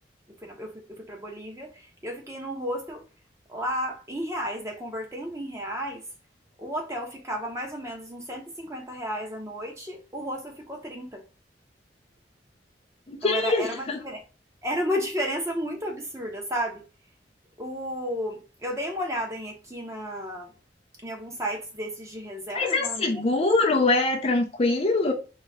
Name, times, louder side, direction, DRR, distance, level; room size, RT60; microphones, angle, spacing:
voice 1, 0.4-3.0 3.5-6.0 6.6-11.2 13.2-14.2 14.6-16.8 17.6-20.5 21.0-23.1, equal, 15° right, 1.0 m, -33 dB
voice 2, 13.1-14.0 22.5-25.1, left 3 dB, 35° left, 0.5 m, -23 dB
4.1 x 2.9 x 3.5 m
head